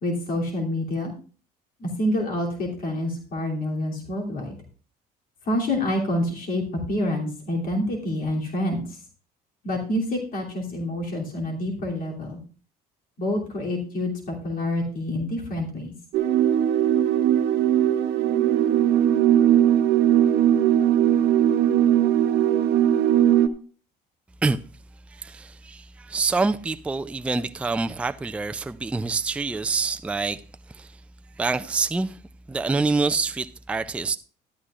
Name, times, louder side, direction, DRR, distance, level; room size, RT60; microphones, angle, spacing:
voice 1, 0.0-1.1 1.8-4.5 5.4-9.0 9.6-12.4 13.2-15.9, left 1 dB, 60° left, 2.9 m, -27 dB
sound 1, 16.1-23.5, right 11 dB, 80° right, 0.8 m, -19 dB
voice 2, 25.1-30.4 30.7-31.0 31.4-32.2 32.5-34.2, right 4 dB, 5° right, 0.4 m, -26 dB
12.5 x 11.5 x 2.4 m
cardioid pair, 110°, 17 cm